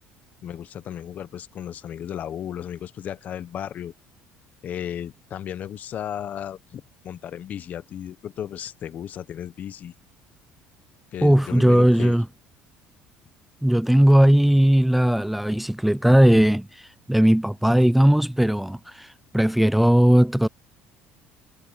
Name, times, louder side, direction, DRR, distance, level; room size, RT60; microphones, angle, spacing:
voice 1, 0.4-3.9 4.6-9.9 11.1-12.2, left 10 dB, 45° left, 1.0 m, -34 dB
voice 2, 11.2-12.3 13.6-20.5, right 1 dB, 5° right, 0.3 m, -18 dB
cardioid pair, 125°, 4 cm